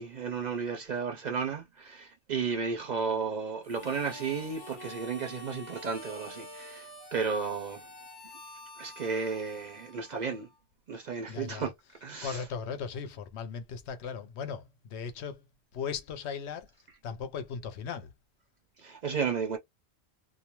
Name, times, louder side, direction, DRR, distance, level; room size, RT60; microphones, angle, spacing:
voice 1, 0.0-7.8 8.8-10.5 10.9-11.7 12.0-12.4 18.8-19.6, right 5 dB, 55° right, 0.5 m, -33 dB
Harmonica, 3.6-10.6, left 1 dB, 30° left, 0.5 m, -47 dB
voice 2, 11.3-11.7 12.2-15.5 15.7-16.7 17.0-18.1, left 6 dB, 80° left, 0.9 m, -37 dB
2.4 x 2.2 x 2.9 m
omnidirectional pair, 1.1 m